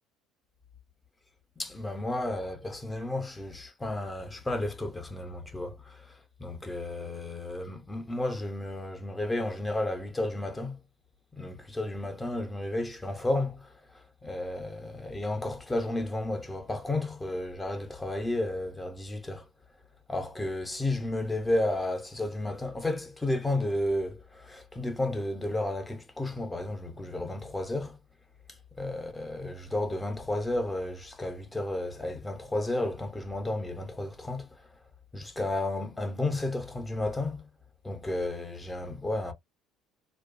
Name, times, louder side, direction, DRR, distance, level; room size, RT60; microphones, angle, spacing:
voice 1, 1.6-10.8 11.3-19.5 20.1-28.0 28.5-34.8 35.1-37.5 37.8-39.3, left 1 dB, 10° left, 0.4 m, -32 dB
2.6 x 2.1 x 2.3 m
cardioid pair, 175°, 0 cm